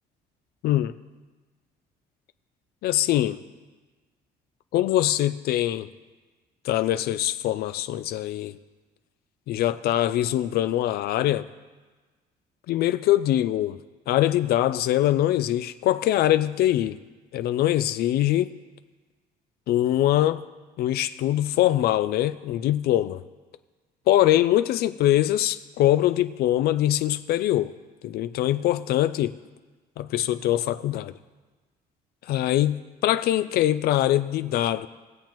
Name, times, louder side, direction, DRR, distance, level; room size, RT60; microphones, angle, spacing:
voice 1, 0.6-1.0 2.8-3.4 4.7-5.9 6.6-8.6 9.5-11.5 12.7-13.8 14.1-17.0 17.3-18.5 19.7-20.4 20.8-23.2 24.1-27.7 28.0-29.4 30.0-31.1 32.2-34.9, left 13 dB, 70° left, 0.4 m, -23 dB
20.0 x 7.3 x 3.0 m
cardioid pair, 110°, 17 cm